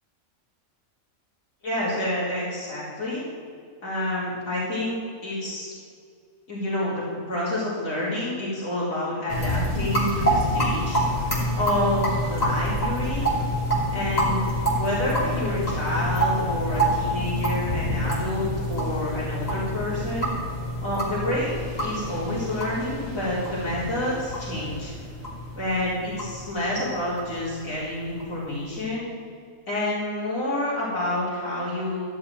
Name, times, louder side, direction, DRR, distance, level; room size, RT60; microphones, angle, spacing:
voice 1, 1.6-3.2 3.8-5.0 5.2-5.7 6.5-11.0 11.6-13.3 13.9-14.4 14.7-20.3 20.8-24.9 25.5-29.1 29.7-32.0, left 1 dB, 70° left, -8 dB, 4.6 m, -28 dB
sound 1, 9.3-28.5, equal, 30° left, 3.2 m, -27 dB
14.5 x 7.1 x 9.4 m, 2.2 s
omnidirectional pair, 1.5 m